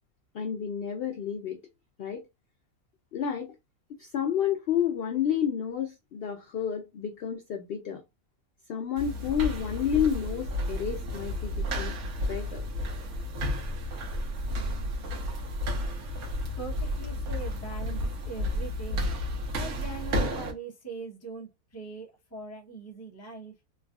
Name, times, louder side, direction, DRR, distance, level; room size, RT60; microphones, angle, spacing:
voice 1, 0.3-1.6 2.0-2.2 3.1-3.5 4.0-8.0 8.7-11.9 12.2-12.6, left 8 dB, 75° left, 0.5 m, -30 dB
sound 1, 9.0-20.5, left 1 dB, 75° right, 1.4 m, -32 dB
voice 2, 16.6-19.1 19.5-23.5, right 4 dB, 15° left, 0.5 m, -41 dB
3.3 x 2.3 x 2.3 m
omnidirectional pair, 1.6 m